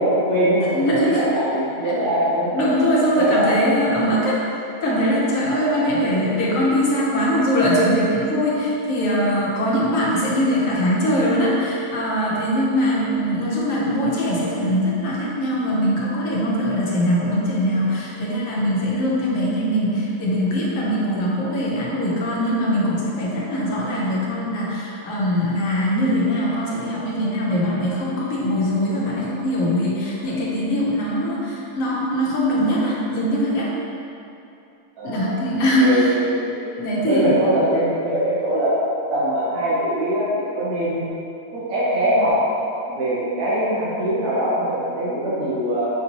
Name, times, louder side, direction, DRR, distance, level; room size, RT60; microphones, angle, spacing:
voice 1, 0.0-2.6 3.1-3.9 5.6-6.4 35.0-35.4 35.8-36.7 37.0-38.7 39.1-41.1 41.7-42.4 42.9-45.9, right 1 dB, 80° right, -10 dB, 1.5 m, -22 dB
voice 2, 0.7-1.2 2.5-4.4 4.8-33.7 35.0-36.1 36.8-37.3, equal, 65° left, -5 dB, 1.1 m, -21 dB
5.2 x 2.9 x 2.8 m, 2.7 s
omnidirectional pair, 1.6 m